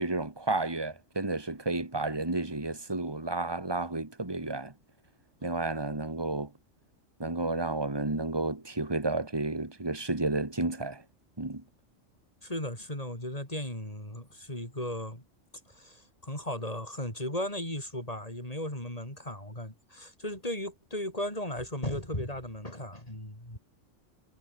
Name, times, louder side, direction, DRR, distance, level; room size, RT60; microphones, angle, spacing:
voice 1, 0.0-4.7 5.4-6.5 7.2-11.0 11.4-11.6, right 2 dB, 20° right, 2.5 m, -31 dB
voice 2, 12.4-15.2 15.7-23.6, left 1 dB, 30° left, 7.4 m, -36 dB
omnidirectional pair, 1.3 m